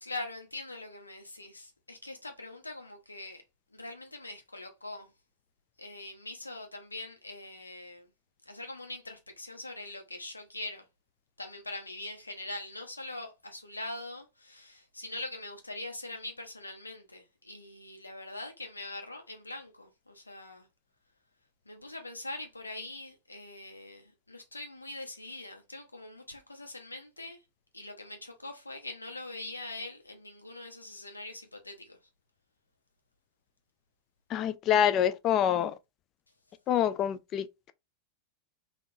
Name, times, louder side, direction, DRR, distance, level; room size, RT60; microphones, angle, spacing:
voice 1, 0.0-3.4 3.7-5.1 5.8-8.1 8.4-10.9 11.4-20.7 21.7-27.4 27.7-32.0, left 2 dB, 80° left, 0.8 m, -43 dB
voice 2, 34.3-35.7 36.7-37.7, left 10 dB, 35° left, 0.3 m, -26 dB
3.6 x 2.4 x 2.7 m
figure-of-eight pair, 90°, 0 cm